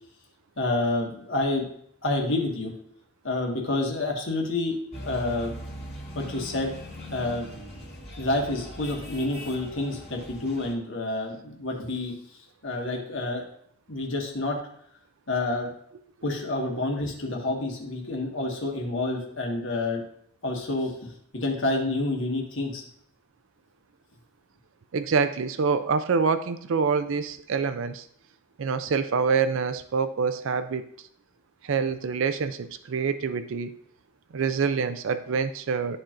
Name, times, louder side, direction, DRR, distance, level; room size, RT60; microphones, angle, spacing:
voice 1, 0.6-1.7 2.0-2.7 3.2-4.8 5.0-5.6 6.1-6.7 7.1-7.5 8.2-13.5 13.9-14.6 15.3-15.7 16.2-20.0 20.4-22.8, left 2 dB, 55° left, 0 dB, 1.6 m, -28 dB
sound 1, 4.9-10.7, equal, 25° left, 2.1 m, -41 dB
voice 2, 24.9-28.1 28.6-30.8 31.6-33.7 34.3-36.0, right 5 dB, 60° right, 11 dB, 0.4 m, -26 dB
12.5 x 4.4 x 2.5 m, 0.68 s
head